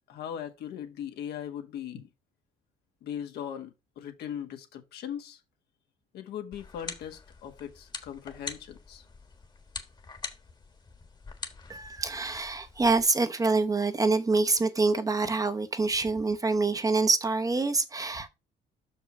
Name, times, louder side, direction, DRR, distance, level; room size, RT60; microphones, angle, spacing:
voice 1, 0.1-2.1 3.0-5.4 6.1-9.0, left 9 dB, 75° left, 1.7 m, -39 dB
sound 1, 6.5-13.1, left 4 dB, 25° left, 1.4 m, -44 dB
voice 2, 11.7-18.3, right 3 dB, 20° right, 0.9 m, -26 dB
6.1 x 5.3 x 5.1 m
cardioid pair, 110°, 17 cm